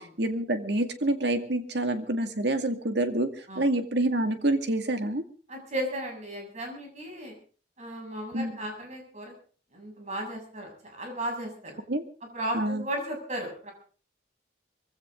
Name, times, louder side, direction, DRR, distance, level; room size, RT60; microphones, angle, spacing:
voice 1, 0.0-5.2 8.3-8.6 11.9-12.0 12.5-12.8, right 1 dB, 65° right, 7 dB, 2.2 m, -27 dB
voice 2, 5.5-7.4 7.8-9.3 9.7-11.8 12.3-13.7, right 1 dB, 40° right, 2 dB, 7.2 m, -35 dB
23.0 x 16.0 x 3.8 m, 0.41 s
head